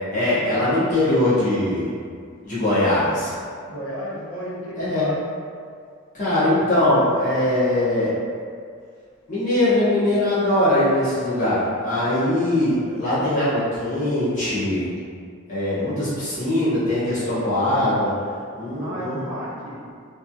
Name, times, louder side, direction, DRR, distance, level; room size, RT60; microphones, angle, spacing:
voice 1, 0.1-1.9 2.4-3.3 4.8-5.1 6.1-8.1 9.3-14.9 15.5-18.1 18.5-19.3, left 1 dB, 35° left, -12 dB, 0.9 m, -21 dB
voice 2, 3.7-5.2 18.8-19.8, equal, 65° left, -7 dB, 0.8 m, -33 dB
3.0 x 2.6 x 2.3 m, 2.2 s
head